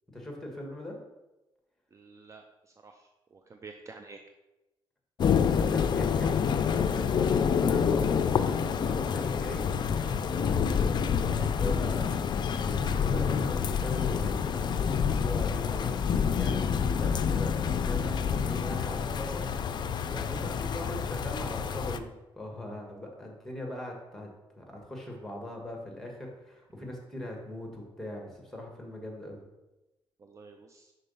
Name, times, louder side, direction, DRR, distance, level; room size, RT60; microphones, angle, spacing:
voice 1, 0.1-1.0 5.4-12.2 12.5-22.1 22.3-24.3 24.5-29.4, left 1 dB, 5° left, 1 dB, 1.5 m, -40 dB
voice 2, 1.9-2.4 2.8-4.2 30.2-30.9, right 4 dB, 30° right, 4 dB, 0.5 m, -49 dB
sound 1, 5.2-22.0, left 7 dB, 50° left, 0.4 m, -28 dB
5.5 x 4.1 x 5.4 m, 1.0 s
cardioid pair, 105°, 10 cm